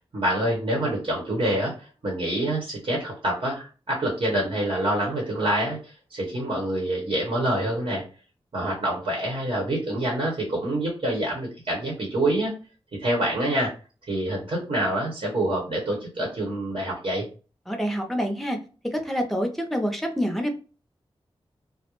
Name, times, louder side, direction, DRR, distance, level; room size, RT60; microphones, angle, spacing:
voice 1, 0.0-8.0 8.5-12.5 13.0-13.7 14.1-17.3, right 1 dB, 60° right, -2 dB, 1.0 m, -26 dB
voice 2, 17.7-18.6 18.9-20.5, equal, ahead, 4 dB, 0.5 m, -27 dB
2.4 x 2.1 x 2.9 m, 0.35 s
wide cardioid pair, 80°, 10 cm